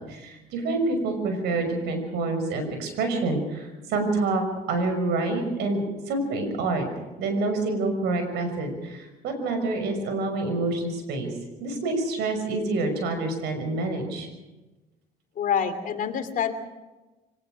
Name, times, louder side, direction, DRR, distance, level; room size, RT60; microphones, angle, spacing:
voice 1, 0.0-4.4 4.7-6.9 7.2-11.3 11.6-14.3, right 2 dB, 85° right, 6 dB, 5.9 m, -27 dB
voice 2, 15.4-16.5, left 8 dB, 55° left, 7 dB, 2.9 m, -26 dB
24.5 x 18.5 x 6.5 m, 1.1 s
cardioid pair, 110°, 17 cm